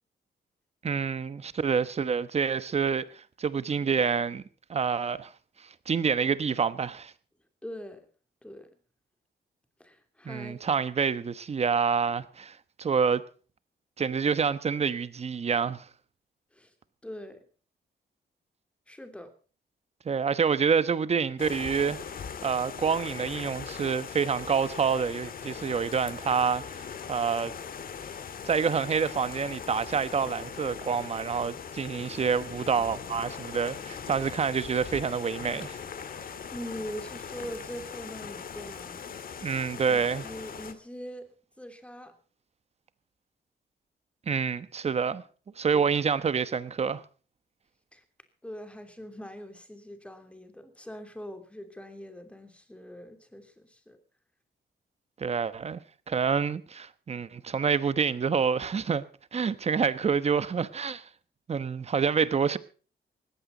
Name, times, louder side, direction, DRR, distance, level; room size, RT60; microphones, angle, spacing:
voice 1, 0.8-4.4 4.7-5.3 5.6-7.1 10.2-13.2 14.0-15.9 20.0-22.0 22.4-27.5 28.4-35.8 39.4-40.3 44.3-45.2 45.6-47.0 55.2-55.8 56.1-59.0 59.3-61.1 61.5-62.6, right 6 dB, 35° right, 1.1 m, -27 dB
voice 2, 7.6-8.1 8.4-8.7 9.8-10.6 16.5-16.7 17.0-17.4 18.9-19.3 36.1-39.1 39.9-41.3 41.6-42.1 45.7-45.9 47.9-48.0 48.4-54.0, equal, 5° left, 2.9 m, -42 dB
sound 1, 21.4-40.7, left 7 dB, 55° left, 1.8 m, -40 dB
19.0 x 15.0 x 4.0 m
cardioid pair, 130°, 18 cm